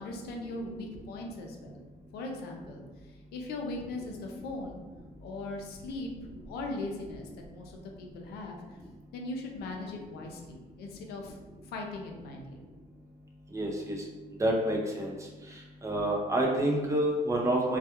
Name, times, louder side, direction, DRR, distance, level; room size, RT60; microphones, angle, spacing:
voice 1, 0.0-1.8 2.1-4.8 5.2-6.1 6.5-8.6 9.1-11.4 11.6-12.6, left 2 dB, 70° left, 1 dB, 0.5 m, -39 dB
voice 2, 13.5-14.0 14.4-15.1 15.8-17.8, right 1 dB, 15° right, -1 dB, 0.5 m, -28 dB
2.3 x 2.2 x 2.9 m, 1.2 s
cardioid pair, 110°, 17 cm